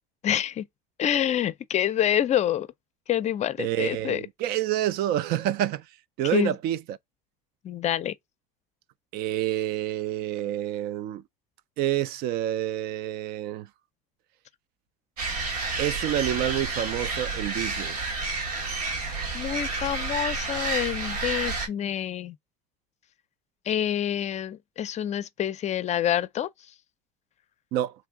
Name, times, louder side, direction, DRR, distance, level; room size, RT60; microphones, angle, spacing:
voice 1, 0.2-0.6 1.0-2.7 3.1-4.2 6.3-6.5 7.6-8.1 19.3-22.4 23.7-26.5, left 10 dB, 35° left, 0.5 m, -27 dB
voice 2, 3.6-5.8 6.2-7.0 9.1-11.2 11.8-13.7 15.8-18.0 27.7-27.9, right 12 dB, 55° right, 0.4 m, -28 dB
sound 1, 15.2-21.7, right 3 dB, 90° right, 1.2 m, -30 dB
3.2 x 2.5 x 3.4 m
hypercardioid pair, 85°, 19 cm